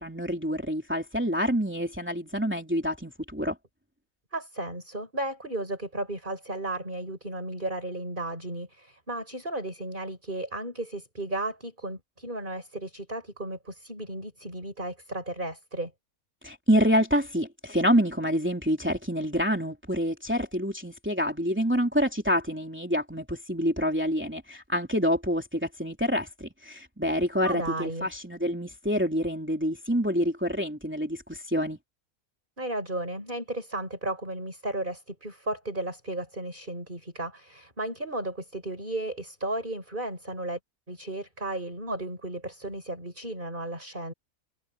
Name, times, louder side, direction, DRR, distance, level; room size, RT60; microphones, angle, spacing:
voice 1, 0.0-3.6 16.4-31.8, equal, 5° right, 3.5 m, -27 dB
voice 2, 4.3-15.9 27.4-28.1 32.6-40.6 40.9-44.1, right 1 dB, 35° right, 7.8 m, -34 dB
omnidirectional pair, 1.5 m